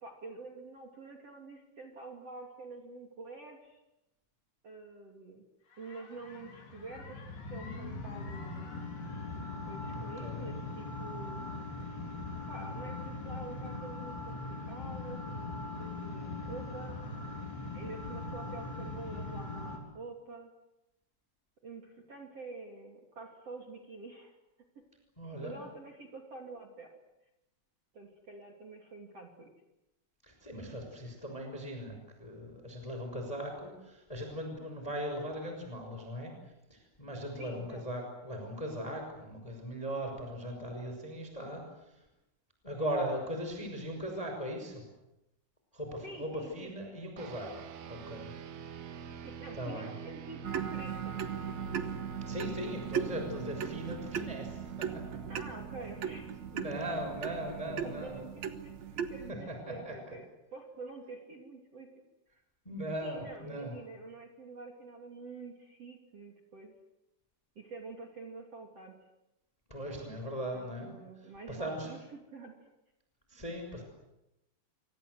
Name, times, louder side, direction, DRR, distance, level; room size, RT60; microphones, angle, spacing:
voice 1, 0.0-3.8 4.6-5.4 5.8-8.7 9.7-11.5 12.5-17.0 17.7-20.5 21.6-24.3 24.8-24.9 25.2-27.0 27.9-29.5 37.4-37.8 46.0-46.7 49.2-51.2 55.3-56.6 57.6-61.9 63.0-66.7 67.6-69.0 70.5-72.5, right 3 dB, 35° right, 2 dB, 3.3 m, -47 dB
sound 1, 5.7-19.8, left 2 dB, 55° left, 5.5 m, -41 dB
voice 2, 9.9-10.4 25.2-25.5 30.2-36.3 36.7-41.9 42.6-44.8 45.7-47.5 47.9-48.3 49.5-49.9 52.3-55.2 56.5-58.2 59.5-59.9 62.6-63.7 69.7-70.9 71.5-71.9 73.3-73.8, equal, 5° left, 3 dB, 5.4 m, -39 dB
sound 2, 47.2-58.9, right 6 dB, 60° right, 3.6 m, -46 dB
sound 3, 50.4-59.3, right 7 dB, 75° right, 1.6 m, -38 dB
27.5 x 24.5 x 8.0 m, 0.91 s
omnidirectional pair, 5.6 m